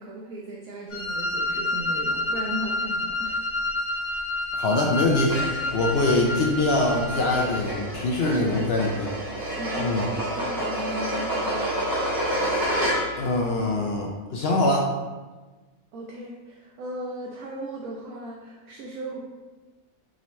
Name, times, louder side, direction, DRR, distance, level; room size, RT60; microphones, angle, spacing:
voice 1, 0.0-3.4 5.9-6.0 9.6-10.0 10.3-11.7 15.9-19.2, right 1 dB, 80° right, -3 dB, 1.1 m, -36 dB
Wind instrument woodwind instrument, 0.9-7.6, left 2 dB, 85° left, 1.7 m, -29 dB
voice 2, 4.6-5.4 5.7-9.1 9.8-10.1 13.2-14.9, left 2 dB, 65° left, -1 dB, 0.6 m, -23 dB
sound 1, 5.2-13.3, equal, 20° right, 0.8 m, -29 dB
5.0 x 2.8 x 3.1 m, 1.2 s
omnidirectional pair, 1.5 m